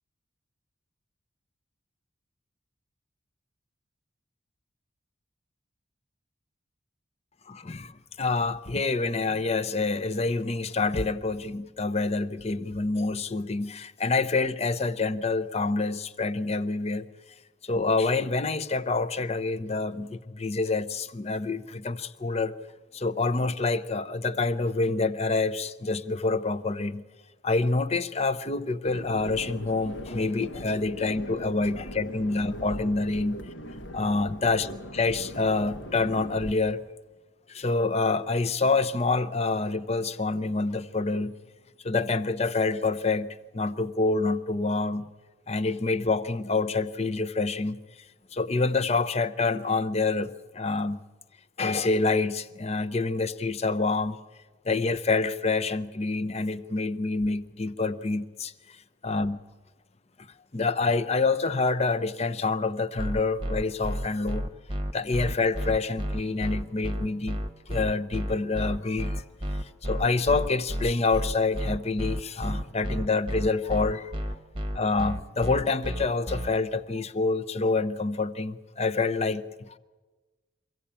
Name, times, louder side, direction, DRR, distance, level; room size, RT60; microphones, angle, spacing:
voice 1, 7.5-17.1 17.6-22.5 22.9-27.0 27.4-33.4 33.9-34.7 34.9-36.8 37.5-41.3 41.8-43.3 43.5-45.1 45.5-47.8 48.3-51.0 51.6-54.2 54.6-58.8 59.0-59.4 60.5-64.5 64.9-67.4 67.7-69.2 69.5-74.4 74.7-79.8, left 3 dB, 30° left, 12 dB, 0.7 m, -27 dB
sound 1, 28.8-36.5, equal, 70° left, 1.3 m, -40 dB
sound 2, 63.0-76.5, equal, 25° right, 1.0 m, -31 dB
24.0 x 15.5 x 8.7 m, 1.3 s
head